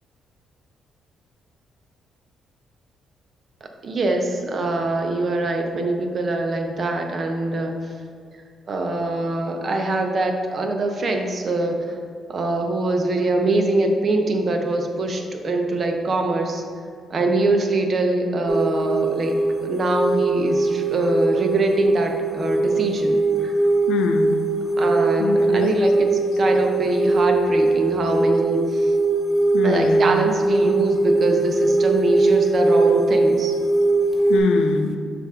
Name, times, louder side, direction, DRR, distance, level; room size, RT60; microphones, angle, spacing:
voice 1, 3.8-7.7 8.7-12.0 12.3-16.6 17.1-23.5 24.8-28.9 29.6-33.5, right 2 dB, 45° right, 3 dB, 0.7 m, -23 dB
sound 1, 18.5-34.4, right 2 dB, 5° right, 1.2 m, -21 dB
voice 2, 23.9-24.4 25.2-25.7 29.5-30.1 34.3-35.0, left 5 dB, 85° left, 6 dB, 0.5 m, -24 dB
6.9 x 2.5 x 5.6 m, 2.2 s
cardioid pair, 90°, 0 cm